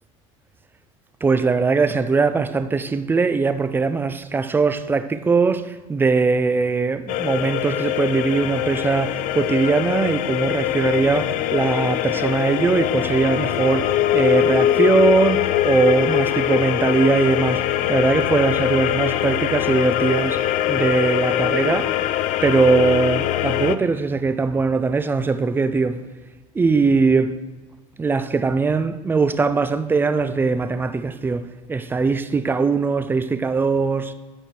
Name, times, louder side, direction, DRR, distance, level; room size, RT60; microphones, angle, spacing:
voice 1, 1.2-17.6 17.9-20.4 20.7-21.9 22.4-26.0 26.5-27.4 28.0-34.1, right 4 dB, 15° right, 0.4 m, -20 dB
sound 1, 7.1-23.8, left 12 dB, 55° left, 0.4 m, -22 dB
13.0 x 4.9 x 4.5 m
supercardioid pair, 125°, 16 cm